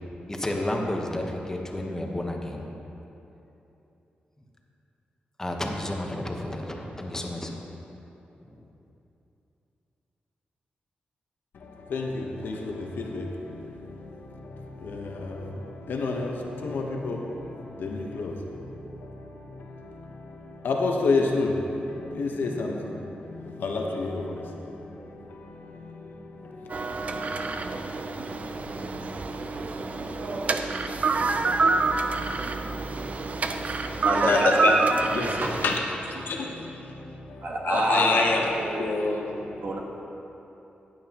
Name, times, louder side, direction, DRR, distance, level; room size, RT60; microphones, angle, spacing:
voice 1, 0.3-2.8 5.4-7.6 8.4-8.6, left 1 dB, 15° left, 1 dB, 1.2 m, -31 dB
voice 2, 11.5-39.7, left 3 dB, 80° left, 1 dB, 1.1 m, -31 dB
sound 1, 26.7-35.8, right 3 dB, 45° right, 0.5 m, -27 dB
voice 3, 33.9-34.5 35.4-35.6 36.1-36.2 37.4-38.2 38.5-38.9 39.6-39.8, right 2 dB, 60° right, -1 dB, 1.6 m, -28 dB
14.5 x 9.3 x 3.0 m, 3.0 s
cardioid pair, 95°, 3 cm